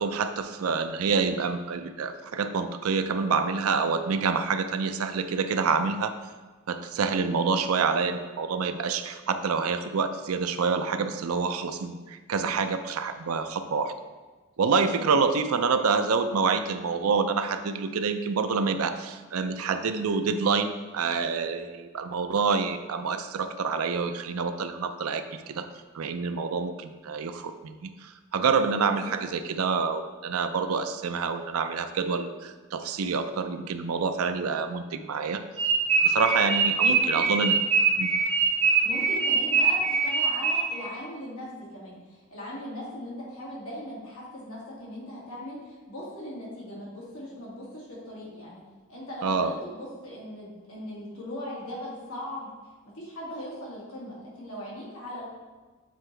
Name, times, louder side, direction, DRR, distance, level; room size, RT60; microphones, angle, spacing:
voice 1, 0.0-6.1 6.7-13.9 14.6-25.7 25.9-35.4 36.0-37.6 38.0-38.1 49.2-49.5, right 5 dB, 80° right, 9 dB, 0.5 m, -27 dB
sound 1, 35.6-40.9, right 5 dB, 30° right, 0.9 m, -23 dB
voice 2, 36.8-37.2 38.6-48.6 48.9-52.5 52.9-55.3, equal, 75° left, -6 dB, 2.1 m, -39 dB
7.7 x 4.5 x 3.3 m, 1.3 s
head